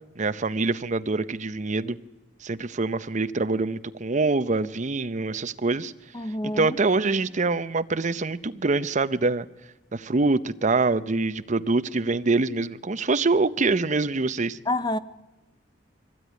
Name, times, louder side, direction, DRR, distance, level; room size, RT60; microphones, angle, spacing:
voice 1, 0.2-2.0 2.4-5.9 6.5-9.5 9.9-14.6, right 3 dB, 40° right, 12 dB, 0.7 m, -25 dB
voice 2, 6.1-6.7 14.7-15.0, left 2 dB, 20° left, 14 dB, 0.7 m, -27 dB
22.5 x 16.5 x 9.5 m, 1.0 s
head